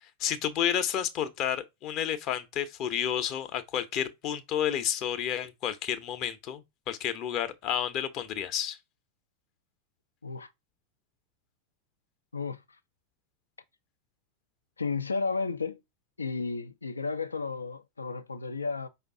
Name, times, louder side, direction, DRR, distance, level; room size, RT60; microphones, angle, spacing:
voice 1, 0.0-8.8, left 9 dB, 40° left, 0.7 m, -31 dB
voice 2, 14.8-15.8 16.2-18.9, left 4 dB, 75° left, 0.5 m, -33 dB
5.2 x 2.4 x 3.6 m
figure-of-eight pair, 90°, 0 cm